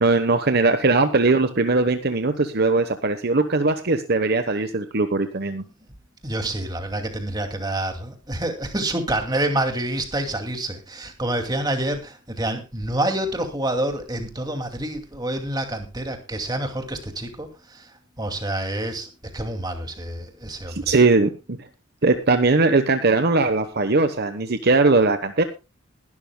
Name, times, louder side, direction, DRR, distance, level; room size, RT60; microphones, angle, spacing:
voice 1, 0.0-5.6 20.7-21.7 22.0-25.4, right 3 dB, 50° right, 9 dB, 1.1 m, -20 dB
voice 2, 6.2-17.8 18.2-20.9, right 1 dB, 20° right, 5 dB, 2.4 m, -27 dB
21.0 x 12.5 x 2.2 m, 0.27 s
head